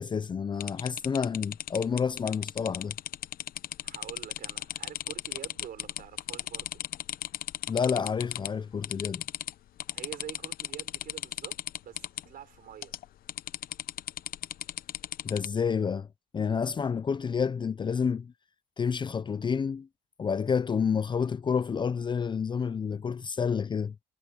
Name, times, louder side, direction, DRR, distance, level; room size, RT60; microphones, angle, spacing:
voice 1, 0.0-3.0 7.7-9.2 15.2-16.1 16.3-18.3 18.8-19.9 20.2-23.9, left 6 dB, 30° left, 0.6 m, -29 dB
sound 1, 0.6-8.5 8.8-9.5 9.8-12.2 12.8-13.0 13.3-15.5, left 12 dB, 60° left, 0.8 m, -36 dB
voice 2, 3.8-6.8 9.9-12.9, right 10 dB, 60° right, 5.0 m, -46 dB
cardioid pair, 110°, 17 cm